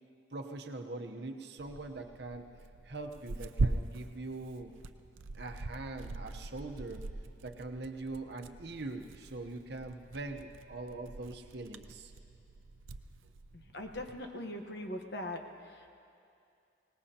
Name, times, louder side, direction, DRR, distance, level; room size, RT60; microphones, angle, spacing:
voice 1, 0.3-2.5 2.8-4.7 5.3-7.0 7.4-12.1, right 2 dB, 55° right, 4 dB, 0.9 m, -42 dB
Tearing, 1.6-14.2, right 3 dB, 85° right, 0.6 m, -41 dB
voice 2, 13.5-15.4 15.7-15.9, left 1 dB, 55° left, 4 dB, 1.2 m, -41 dB
24.5 x 19.0 x 2.9 m, 2.5 s
head